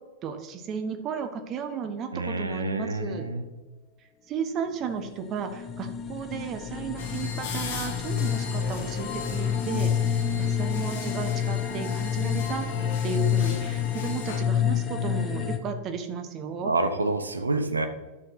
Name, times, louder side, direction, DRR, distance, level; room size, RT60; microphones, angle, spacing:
voice 1, 0.2-3.3 4.3-12.7 13.0-16.7, right 6 dB, 35° right, 8 dB, 1.1 m, -34 dB
voice 2, 2.1-3.4 16.6-17.9, right 2 dB, 75° right, 8 dB, 0.9 m, -28 dB
sound 1, 4.9-15.6, left 8 dB, 25° left, 0.9 m, -28 dB
sound 2, 7.0-14.4, left 5 dB, 55° left, 2.1 m, -38 dB
11.0 x 6.6 x 4.0 m, 1.2 s
figure-of-eight pair, 90°, 0 cm